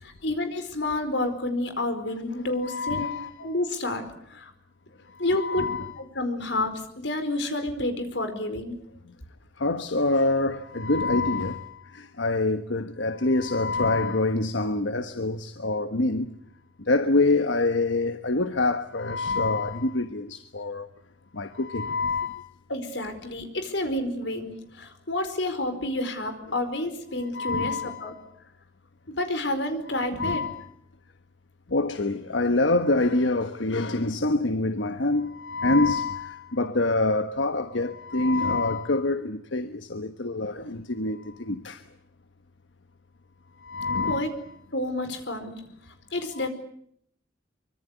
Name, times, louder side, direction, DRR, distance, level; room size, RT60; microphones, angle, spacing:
voice 1, 0.0-3.1 3.4-4.5 5.2-5.7 6.0-8.8 22.7-28.1 29.1-30.5 44.1-44.3 44.7-45.6 46.1-46.5, left 1 dB, 75° left, 4.7 m, -29 dB
voice 2, 2.6-3.3 5.3-5.9 9.6-16.3 16.9-20.9 21.3-22.5 27.3-28.1 30.0-30.6 31.7-41.8 43.6-44.3 46.4-46.5, left 2 dB, 90° left, 1.3 m, -26 dB
24.5 x 24.5 x 8.2 m
head